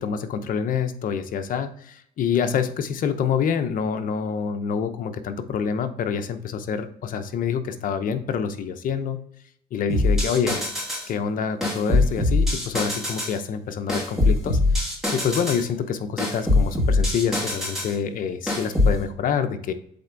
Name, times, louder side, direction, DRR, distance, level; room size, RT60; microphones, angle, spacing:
voice 1, 0.0-9.2 9.7-10.6 11.1-14.6 15.1-19.7, left 7 dB, 55° left, 8 dB, 0.8 m, -26 dB
sound 1, 9.9-11.1 11.6-13.4 13.9-15.7 16.2-17.9 18.5-19.0, left 2 dB, ahead, 2.3 m, -22 dB
7.9 x 3.4 x 3.9 m, 0.68 s
cardioid pair, 110°, 17 cm